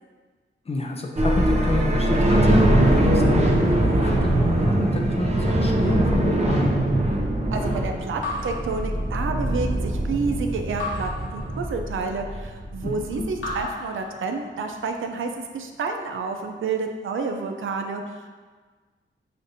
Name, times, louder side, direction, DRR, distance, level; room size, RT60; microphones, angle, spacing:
voice 1, 0.7-6.8 12.8-13.3, left 2 dB, 30° left, 2 dB, 0.4 m, -29 dB
sound 1, 1.2-13.6, right 1 dB, 35° right, 0.6 m, -22 dB
voice 2, 7.5-18.3, right 4 dB, 80° right, 4 dB, 0.4 m, -29 dB
Raindrop / Drip, 8.2-9.6 10.8-12.2 13.4-14.8, left 2 dB, 85° left, 1.3 m, -35 dB
6.3 x 2.5 x 2.6 m, 1.4 s
wide cardioid pair, 115°, 20 cm